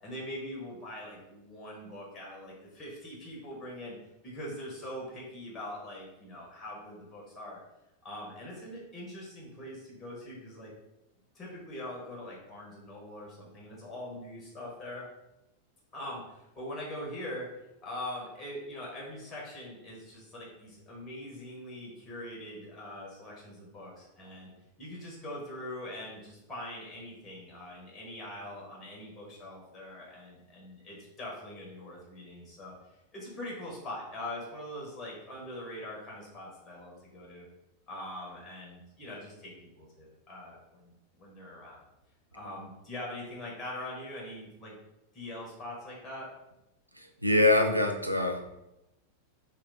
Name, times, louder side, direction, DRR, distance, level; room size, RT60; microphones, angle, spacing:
voice 1, 0.0-4.0 4.2-7.6 8.0-10.7 11.3-15.0 15.9-17.5 17.8-24.5 24.8-32.7 33.1-37.4 37.9-41.8 42.3-44.7 45.1-46.3, left 1 dB, 25° left, -4 dB, 1.1 m, -42 dB
voice 2, 47.0-48.6, left 2 dB, 90° right, 4 dB, 0.4 m, -25 dB
3.2 x 2.7 x 3.5 m, 0.91 s
figure-of-eight pair, 90°, 0 cm